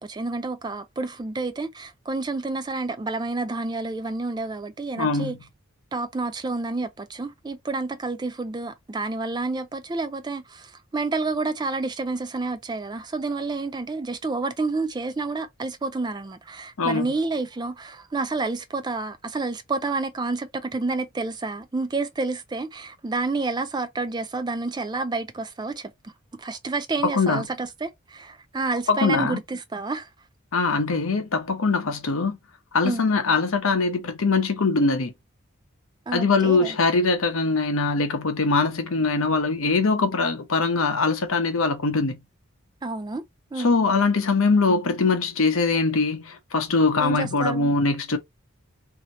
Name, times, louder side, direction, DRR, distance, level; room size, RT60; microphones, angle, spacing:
voice 1, 0.0-5.4 5.9-30.1 32.8-33.1 36.1-36.8 42.8-43.2 43.5-43.7 47.0-47.7, right 3 dB, 20° right, 0.3 m, -29 dB
voice 2, 5.0-5.4 16.8-17.1 27.1-27.4 28.9-29.4 30.5-32.4 32.7-35.1 36.1-42.2 43.6-48.2, left 3 dB, 75° left, 0.8 m, -22 dB
2.8 x 2.7 x 2.9 m
head